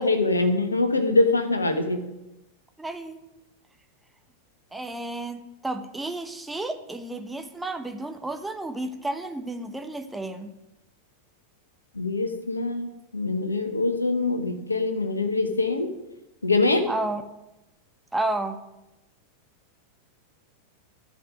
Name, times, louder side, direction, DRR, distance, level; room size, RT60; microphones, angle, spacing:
voice 1, 0.0-2.0 11.9-15.9 16.4-16.9, left 2 dB, 80° left, 8 dB, 1.3 m, -24 dB
voice 2, 2.8-3.2 4.7-10.5 16.8-17.2 18.1-18.6, right 2 dB, 5° right, 7 dB, 1.1 m, -32 dB
12.5 x 5.4 x 8.9 m, 0.94 s
figure-of-eight pair, 90°, 0 cm